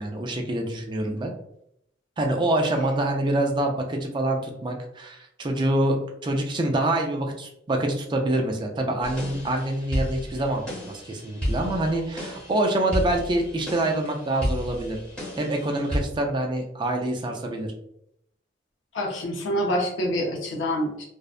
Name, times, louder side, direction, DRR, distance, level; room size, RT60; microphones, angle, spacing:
voice 1, 0.0-1.3 2.2-15.0 15.4-17.7, right 1 dB, 25° right, 2 dB, 0.4 m, -26 dB
sound 1, 9.0-16.0, equal, 5° left, 1.0 m, -32 dB
voice 2, 18.9-21.1, equal, 80° left, 0 dB, 0.5 m, -26 dB
2.6 x 2.1 x 2.4 m, 0.75 s
head